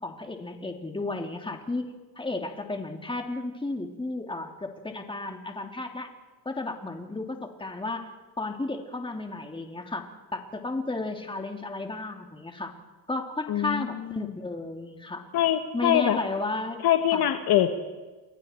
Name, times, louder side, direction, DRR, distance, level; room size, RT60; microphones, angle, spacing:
voice 1, 0.0-1.9 2.2-6.1 6.4-8.0 8.4-12.7 13.1-15.2 15.7-16.8 17.1-17.2, left 2 dB, 10° left, 4 dB, 2.8 m, -33 dB
voice 2, 13.5-14.3 15.3-16.2 16.8-17.8, left 11 dB, 50° left, 7 dB, 1.5 m, -24 dB
29.5 x 22.0 x 4.5 m, 1.2 s
supercardioid pair, 105°, 47 cm